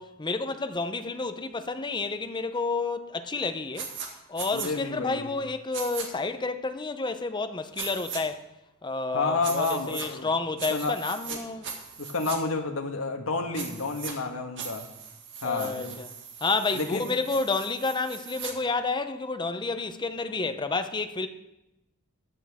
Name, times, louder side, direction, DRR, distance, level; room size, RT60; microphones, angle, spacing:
voice 1, 0.0-3.9 4.3-8.5 8.8-11.7 15.4-16.1 16.4-21.3, left 3 dB, 20° left, 0.7 m, -30 dB
sound 1, 3.8-4.1 4.4-4.7 5.7-6.1 7.8-8.2 9.4-10.1 10.6-11.4 11.6-12.4 13.5-14.1 14.6-18.5, right 6 dB, 60° right, 1.9 m, -39 dB
voice 2, 4.5-5.3 9.1-10.3 10.7-11.0 11.3-11.4 12.0-14.9 15.4-16.0 16.7-17.1, left 3 dB, 75° left, 1.4 m, -30 dB
14.5 x 11.0 x 3.6 m
head